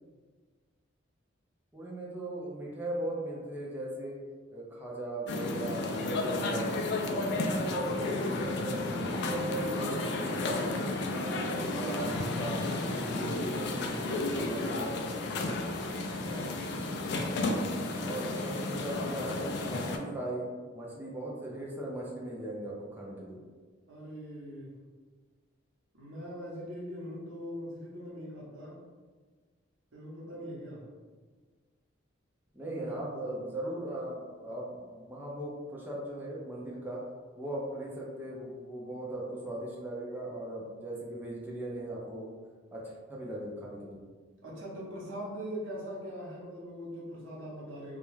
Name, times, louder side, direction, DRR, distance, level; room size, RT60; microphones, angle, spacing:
voice 1, 1.7-4.2 4.5-6.8 7.0-8.8 9.2-15.0 18.0-20.5 20.7-23.4 32.5-37.0 37.4-42.3 42.7-44.0, right 1 dB, 10° right, -4 dB, 0.4 m, -38 dB
sound 1, 5.3-20.0, left 2 dB, 60° left, 0.3 m, -32 dB
voice 2, 9.2-9.6 13.0-13.3 15.9-17.6 23.9-24.7 25.9-28.8 29.9-30.9 32.7-33.4 44.4-48.0, equal, 85° right, -4 dB, 0.8 m, -42 dB
2.3 x 2.1 x 3.0 m, 1.5 s
head